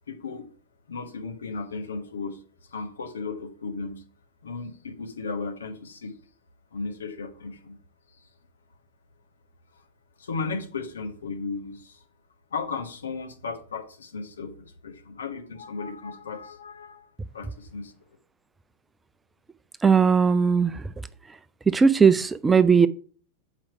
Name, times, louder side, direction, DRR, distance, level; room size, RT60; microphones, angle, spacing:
voice 1, 0.1-0.5 0.9-2.4 2.7-4.0 4.4-6.1 6.7-7.8 8.2-8.3 9.7-9.8 10.2-12.0 12.5-17.9, left 4 dB, 70° left, 1.3 m, -35 dB
voice 2, 19.8-20.8 21.7-22.9, right 6 dB, 15° right, 0.4 m, -18 dB
7.5 x 4.9 x 4.7 m
figure-of-eight pair, 90°, 0 cm